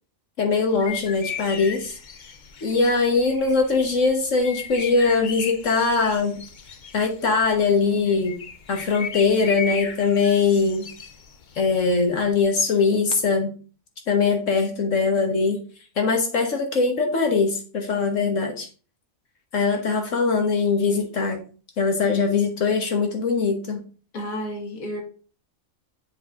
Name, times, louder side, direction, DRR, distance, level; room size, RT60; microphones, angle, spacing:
voice 1, 0.4-1.9 2.6-6.3 6.9-8.4 8.7-10.9 11.5-13.5 14.1-15.6 16.0-18.7 19.5-21.4 21.8-23.8, left 4 dB, 65° left, 3 dB, 1.5 m, -21 dB
sound 1, 0.7-12.4, left 6 dB, 45° left, 0.7 m, -37 dB
voice 2, 24.1-25.0, equal, 85° left, 1 dB, 2.0 m, -31 dB
7.2 x 4.0 x 4.9 m, 0.38 s
omnidirectional pair, 1.4 m